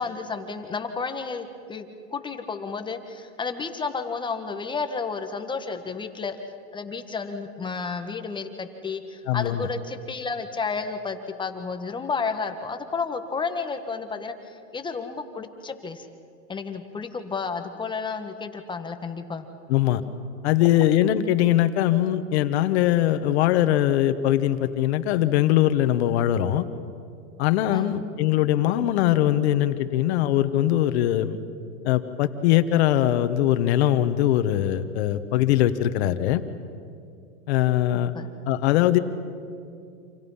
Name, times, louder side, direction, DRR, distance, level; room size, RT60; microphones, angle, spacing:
voice 1, 0.0-6.4 6.7-16.1 16.5-19.5 27.7-27.9 37.9-38.3, left 5 dB, 10° left, 6 dB, 1.5 m, -32 dB
voice 2, 9.3-9.7 19.7-20.0 20.4-26.6 27.4-31.4 31.8-36.4 37.5-38.1 38.5-39.0, left 12 dB, 55° left, 10 dB, 1.5 m, -21 dB
29.0 x 27.5 x 5.7 m, 2.4 s
hypercardioid pair, 135°, 39 cm